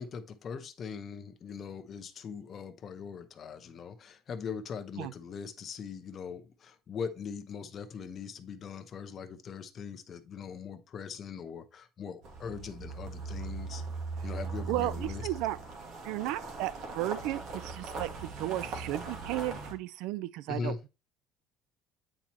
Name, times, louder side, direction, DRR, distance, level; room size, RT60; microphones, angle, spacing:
voice 1, 0.0-13.8 14.2-15.2 20.5-20.8, left 6 dB, 35° left, 0.8 m, -41 dB
sound 1, 12.2-19.7, right 4 dB, 55° right, 1.9 m, -40 dB
voice 2, 14.7-15.6 16.0-20.9, right 15 dB, 75° right, 0.4 m, -34 dB
8.8 x 4.4 x 3.0 m
cardioid pair, 150°, 0 cm